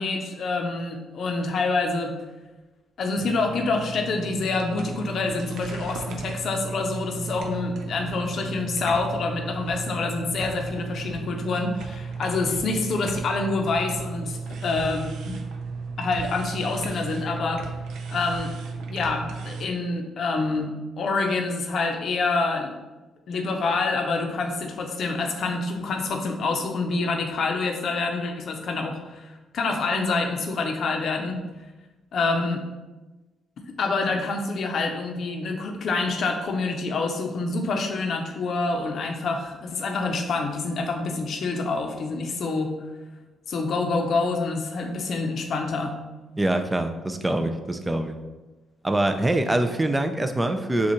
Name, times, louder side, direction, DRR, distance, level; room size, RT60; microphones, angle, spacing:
voice 1, 0.0-2.2 3.0-15.4 16.0-17.6 18.1-18.5 18.8-22.7 23.3-31.4 32.1-32.6 33.8-42.7 43.5-46.0, left 3 dB, 60° left, 4 dB, 0.7 m, -27 dB
sound 1, 3.2-19.7, right 4 dB, 80° right, 0.5 m, -35 dB
voice 2, 46.4-48.1 48.8-50.9, right 1 dB, 15° right, 6 dB, 0.4 m, -24 dB
6.9 x 2.4 x 3.0 m, 1.2 s
cardioid pair, 90°, 0 cm